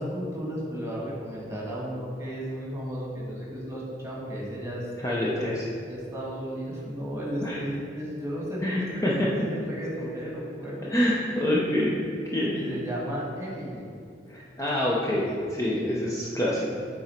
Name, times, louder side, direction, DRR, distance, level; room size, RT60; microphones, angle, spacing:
voice 1, 0.0-4.9 5.3-5.4 5.9-10.9 12.5-13.9, equal, 15° right, -5 dB, 1.5 m, -34 dB
voice 2, 5.0-5.7 7.4-7.7 8.6-9.3 10.9-12.0 12.2-12.6 14.3-16.7, left 1 dB, 15° left, -5 dB, 0.6 m, -26 dB
8.9 x 3.8 x 4.4 m, 2.5 s
head